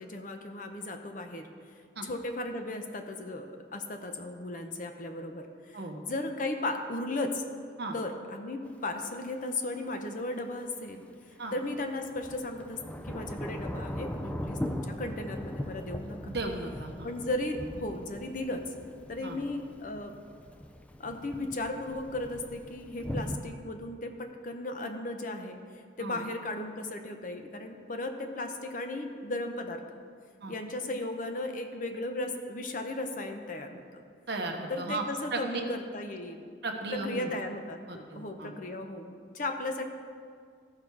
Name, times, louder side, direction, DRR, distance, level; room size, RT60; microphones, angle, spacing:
voice 1, 0.0-1.5 2.0-7.4 7.9-11.0 11.3-12.8 13.0-16.3 17.0-18.6 19.1-20.2 21.0-29.8 30.5-34.0 34.7-36.4 36.9-39.8, left 2 dB, 45° left, 5 dB, 0.7 m, -36 dB
Thunder / Rain, 8.6-8.7 11.7-23.4, left 1 dB, 5° left, 0.3 m, -39 dB
voice 2, 16.2-17.1 19.2-19.4 26.0-26.2 30.4-30.5 34.3-35.0 35.3-35.6 36.6-37.3 37.9-38.5, right 2 dB, 60° right, 3 dB, 1.0 m, -35 dB
14.5 x 5.7 x 4.6 m, 2.1 s
head